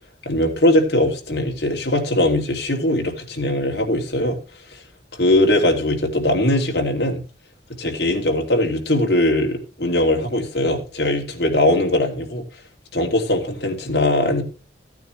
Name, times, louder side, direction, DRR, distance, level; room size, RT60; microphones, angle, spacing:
voice 1, 0.2-4.4 5.2-7.2 7.8-12.4 12.9-14.4, left 1 dB, 60° left, 1 dB, 2.8 m, -20 dB
15.5 x 9.2 x 3.3 m, 0.34 s
head